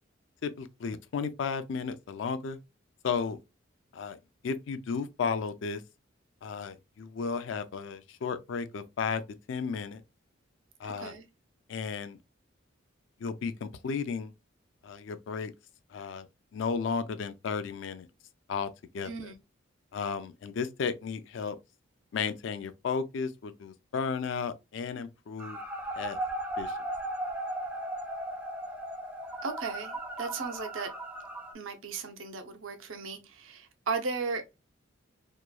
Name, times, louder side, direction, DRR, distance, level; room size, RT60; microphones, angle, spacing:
voice 1, 0.4-2.6 3.0-3.4 3.9-4.2 4.4-5.8 6.4-9.2 9.5-10.0 10.8-11.1 11.7-12.2 13.2-14.3 14.8-15.5 15.9-18.1 18.5-19.3 19.9-21.6 22.1-25.6 26.0-26.2 26.6-26.8, left 5 dB, 65° left, 0.4 m, -34 dB
voice 2, 10.8-11.2 19.0-19.3 29.4-30.9 31.5-34.4, right 4 dB, 80° right, 0.6 m, -36 dB
sound 1, 25.4-31.5, right 1 dB, 10° right, 0.4 m, -36 dB
2.9 x 2.2 x 2.3 m
head